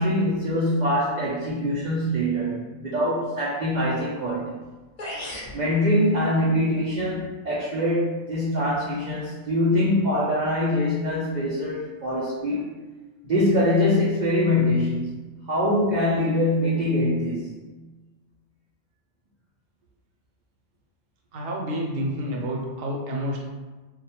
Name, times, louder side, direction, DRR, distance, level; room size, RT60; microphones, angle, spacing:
voice 1, 0.0-4.5 5.5-12.7 13.2-17.5, left 1 dB, 85° right, -7 dB, 0.4 m, -23 dB
sound 1, 4.6-4.7 5.0-5.6, left 1 dB, 50° left, 0.5 m, -34 dB
voice 2, 21.3-23.4, equal, 70° right, -1 dB, 0.9 m, -29 dB
2.3 x 2.1 x 2.8 m, 1.2 s
omnidirectional pair, 1.3 m